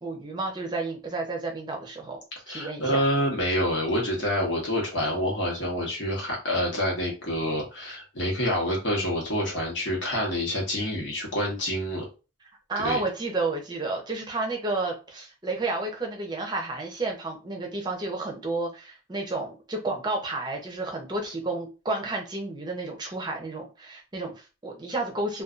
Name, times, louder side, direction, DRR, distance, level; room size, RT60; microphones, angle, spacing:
voice 1, 0.0-2.2 2.5-3.0 12.7-25.4, right 2 dB, 25° right, 1 dB, 0.6 m, -31 dB
voice 2, 2.5-12.1 12.8-13.0, equal, 80° left, -2 dB, 1.0 m, -27 dB
2.6 x 2.3 x 2.4 m, 0.32 s
head